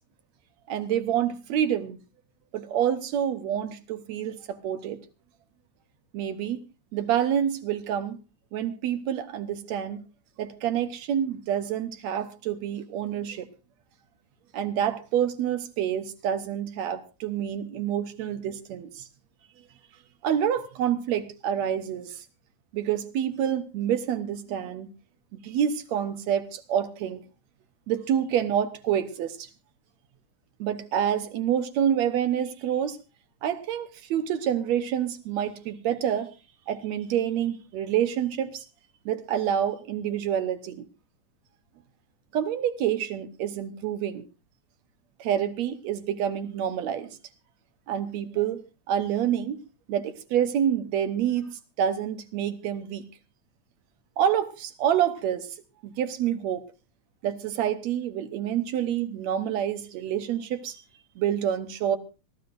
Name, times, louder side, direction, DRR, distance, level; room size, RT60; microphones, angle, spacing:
voice 1, 0.7-2.0 2.5-5.0 6.1-6.6 6.9-8.2 8.5-10.0 10.4-13.5 14.5-19.1 20.2-22.2 22.7-24.9 25.4-27.2 27.9-29.5 30.6-33.0 33.4-36.3 36.7-38.6 39.1-40.8 42.3-44.2 45.2-47.2 47.9-48.6 48.9-49.6 49.9-53.0 54.2-55.5 55.8-56.6 57.2-60.8 61.2-62.0, right 9 dB, 70° right, 2.2 m, -27 dB
24.0 x 14.0 x 2.6 m
omnidirectional pair, 3.4 m